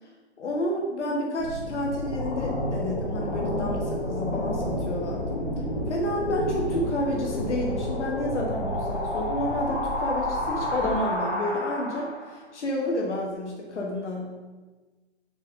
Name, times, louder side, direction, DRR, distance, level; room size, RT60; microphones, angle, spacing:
voice 1, 0.4-5.4 5.9-14.4, left 1 dB, 75° left, -1 dB, 1.3 m, -30 dB
sound 1, 1.4-12.4, left 1 dB, 40° left, 1.8 m, -30 dB
5.2 x 4.5 x 5.0 m, 1.3 s
hypercardioid pair, 150°, 35 cm